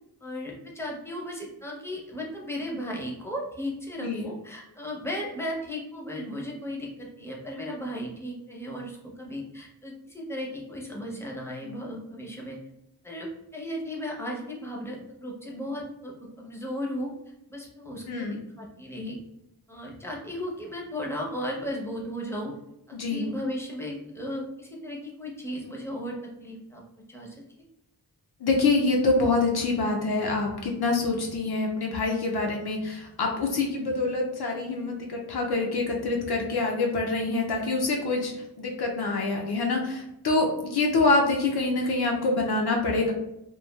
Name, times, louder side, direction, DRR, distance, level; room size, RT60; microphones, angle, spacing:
voice 1, 0.2-12.6 13.0-17.1 17.5-19.2 19.7-22.5 22.9-26.8 27.1-27.3, equal, 5° left, -2 dB, 0.6 m, -35 dB
voice 2, 18.1-18.4 22.9-23.3 28.4-38.3 38.6-43.1, left 3 dB, 70° left, 0 dB, 0.5 m, -26 dB
3.0 x 2.3 x 2.2 m, 0.86 s
wide cardioid pair, 80°, 40 cm